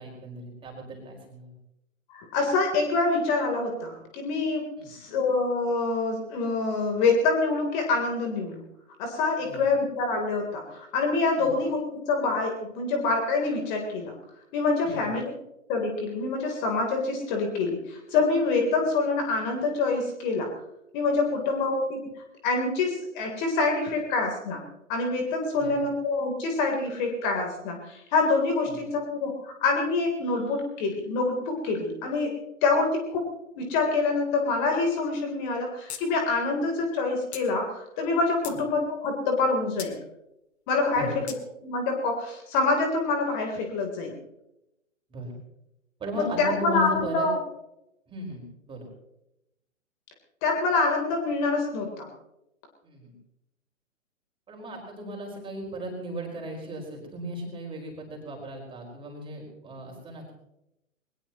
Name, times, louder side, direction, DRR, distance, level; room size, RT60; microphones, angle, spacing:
voice 1, 0.0-1.5 4.8-5.0 9.4-9.6 11.4-11.5 14.8-15.1 25.5-25.8 28.6-28.8 38.5-38.6 40.9-41.2 45.1-45.4 46.0-47.3 48.1-48.9 52.8-53.1 54.5-60.3, equal, 15° right, 0 dB, 5.0 m, -36 dB
voice 2, 2.1-8.6 9.0-14.1 14.5-15.2 15.7-20.5 20.9-22.0 22.4-24.6 24.9-33.3 33.6-40.0 40.7-41.1 41.6-44.2 46.2-47.4 50.4-52.1, left 3 dB, 35° left, 2 dB, 3.6 m, -26 dB
sound 1, 35.9-36.0 36.3-36.4 37.3-37.5 38.1-38.6 39.8-39.9 41.3-41.4, left 9 dB, 55° left, 2.1 m, -38 dB
22.0 x 20.5 x 3.1 m, 0.86 s
hypercardioid pair, 130°, 39 cm